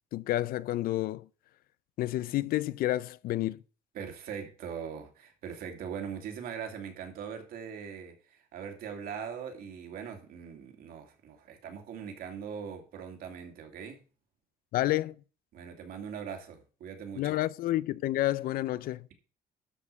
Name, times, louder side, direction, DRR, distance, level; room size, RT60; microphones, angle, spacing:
voice 1, 0.1-1.3 2.0-3.6 14.7-15.2 17.2-19.1, left 15 dB, 70° left, 0.5 m, -29 dB
voice 2, 3.9-14.0 15.5-17.4, right 7 dB, 70° right, 2.7 m, -41 dB
12.5 x 5.0 x 6.7 m
cardioid pair, 160°, 16 cm